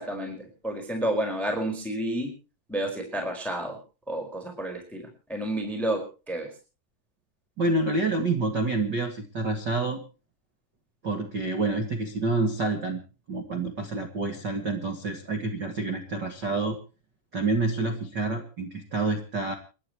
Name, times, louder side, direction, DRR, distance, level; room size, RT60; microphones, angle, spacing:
voice 1, 0.0-2.3 2.7-3.8 4.1-6.0 6.3-6.5, right 1 dB, ahead, 4 dB, 4.2 m, -30 dB
voice 2, 7.6-10.0 11.0-13.0 13.3-16.7 17.3-19.5, right 3 dB, 70° right, 6 dB, 1.0 m, -28 dB
29.5 x 11.5 x 3.1 m, 0.34 s
omnidirectional pair, 5.2 m